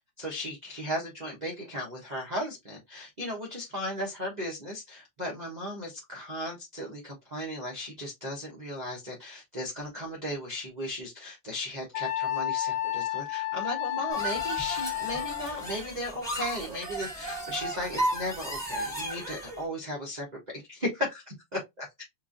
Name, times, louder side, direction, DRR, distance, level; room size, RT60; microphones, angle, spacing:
voice 1, 0.2-20.3 20.5-22.0, left 1 dB, 35° right, 0.7 m, -36 dB
Wind instrument woodwind instrument, 11.9-15.7, left 14 dB, 75° left, 1.1 m, -31 dB
sound 1, 14.1-19.6, right 1 dB, ahead, 1.4 m, -34 dB
4.5 x 2.6 x 2.5 m
omnidirectional pair, 2.3 m